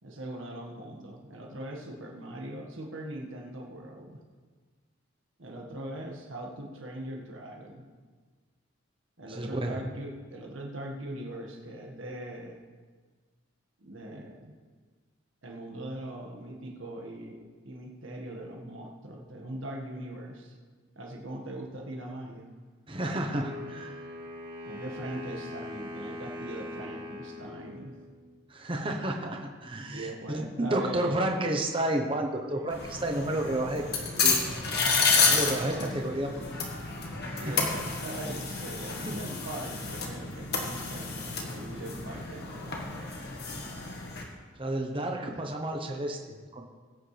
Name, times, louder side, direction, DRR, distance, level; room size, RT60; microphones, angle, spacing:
voice 1, 0.0-4.2 5.4-7.8 9.2-12.6 13.8-14.5 15.4-20.5 20.9-22.5 24.6-27.9 29.9-31.4 32.5-32.7 33.8-33.9 35.2-35.8 37.4-43.1 45.1-45.3, right 1 dB, 85° right, 0 dB, 1.8 m, -41 dB
voice 2, 9.3-9.8 22.9-24.0 28.5-34.4 35.2-36.3 37.3-37.7 39.0-39.2 44.6-46.7, right 1 dB, 25° right, 2 dB, 1.0 m, -31 dB
Wind instrument woodwind instrument, 23.4-28.4, left 2 dB, 45° right, 2.6 m, -41 dB
sound 1, 32.7-44.2, left 4 dB, 55° left, 1.7 m, -30 dB
20.5 x 8.6 x 3.4 m, 1.4 s
head